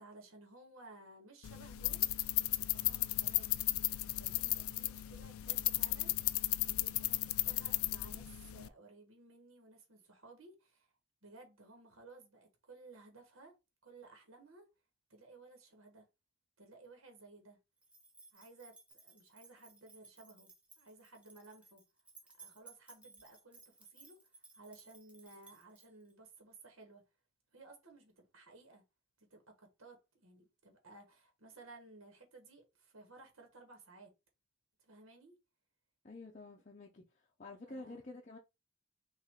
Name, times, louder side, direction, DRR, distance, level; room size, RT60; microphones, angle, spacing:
voice 1, 0.0-2.1 2.6-3.6 4.1-10.9 11.2-13.5 13.8-14.6 15.1-16.0 16.6-17.6 18.3-21.8 22.4-27.0 27.5-28.8 29.2-34.1 34.8-35.4 37.6-38.1, right 3 dB, 70° right, 1.3 m, -57 dB
sound 1, 1.4-8.7, left 17 dB, 80° left, 0.4 m, -35 dB
sound 2, 17.8-26.1, right 3 dB, 5° right, 0.8 m, -60 dB
voice 2, 36.0-37.1 37.4-38.4, left 2 dB, 35° left, 0.6 m, -49 dB
5.7 x 2.5 x 3.6 m
head